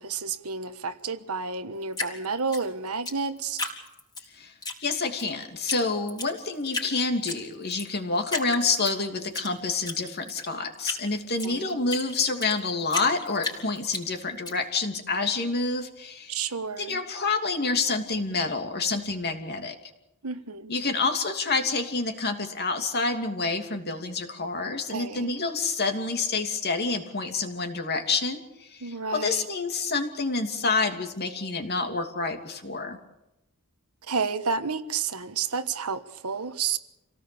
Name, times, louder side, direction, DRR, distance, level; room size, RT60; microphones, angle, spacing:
voice 1, 0.0-3.6 11.4-11.8 16.3-17.0 20.2-20.7 24.9-25.3 28.8-29.5 34.1-36.8, right 5 dB, 85° right, 1.4 m, -31 dB
Drip, 1.9-4.2 4.6-5.3 5.7-5.8 6.1-6.9 7.3-7.9 8.3-9.5 9.8-12.6 12.9-14.5, left 3 dB, 20° left, 3.8 m, -33 dB
voice 2, 4.8-16.3 16.8-19.8 20.7-33.0, left 3 dB, 50° left, 2.8 m, -28 dB
27.5 x 18.0 x 7.0 m
head